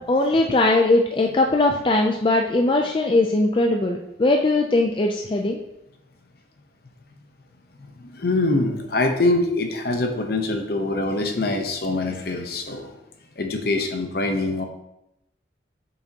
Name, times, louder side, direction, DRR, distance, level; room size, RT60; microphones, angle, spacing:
voice 1, 0.1-5.6, left 2 dB, 25° left, 2 dB, 0.4 m, -20 dB
voice 2, 7.8-12.9 13.4-14.7, left 2 dB, 55° left, 5 dB, 0.8 m, -24 dB
6.9 x 5.8 x 2.8 m, 0.86 s
head